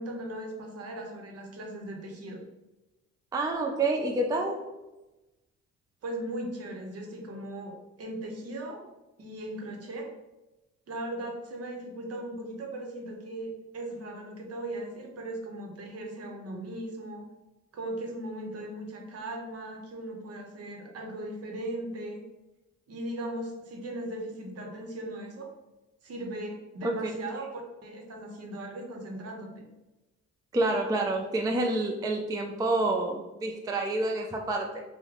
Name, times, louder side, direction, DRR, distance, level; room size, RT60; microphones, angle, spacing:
voice 1, 0.0-2.4 6.0-8.9 9.2-10.1 10.9-17.2 17.7-22.2 22.9-25.5 26.0-29.7, right 1 dB, 55° right, 1 dB, 0.8 m, -38 dB
voice 2, 3.3-4.6 26.8-27.1 30.5-34.8, right 2 dB, 15° right, 2 dB, 0.3 m, -28 dB
3.1 x 2.1 x 3.6 m, 1.0 s
cardioid pair, 90°, 30 cm